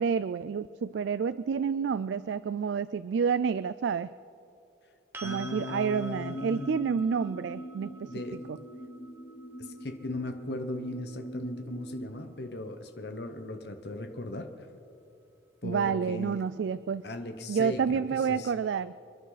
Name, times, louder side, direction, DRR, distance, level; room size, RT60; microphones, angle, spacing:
voice 1, 0.0-4.1 5.2-8.1 8.5-8.6 15.6-17.0 17.5-18.9, right 6 dB, 80° right, 15 dB, 0.3 m, -29 dB
sound 1, 5.1-13.0 15.8-15.9, right 3 dB, 10° right, 1.0 m, -50 dB
voice 2, 5.2-6.8 8.1-8.4 9.6-14.7 15.6-16.4 17.0-18.5, left 1 dB, 65° left, 6 dB, 1.1 m, -37 dB
sound 2, 6.3-12.1, right 1 dB, 40° left, 4.6 m, -43 dB
28.5 x 11.0 x 4.1 m, 2.6 s
head